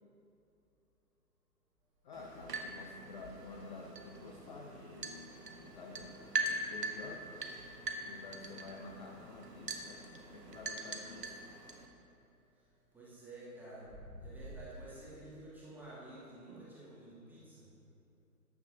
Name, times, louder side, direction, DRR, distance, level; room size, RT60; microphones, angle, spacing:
sound 1, 1.8-15.0, equal, 20° right, 2.4 m, -59 dB
voice 1, 2.0-7.3 8.0-11.3, left 3 dB, 30° left, 0 dB, 0.7 m, -50 dB
sound 2, 2.1-11.9, right 2 dB, 75° right, 1.3 m, -42 dB
voice 2, 12.9-17.7, right 1 dB, 5° right, -9 dB, 2.2 m, -51 dB
13.5 x 9.8 x 3.0 m, 2.8 s
figure-of-eight pair, 125°, 48 cm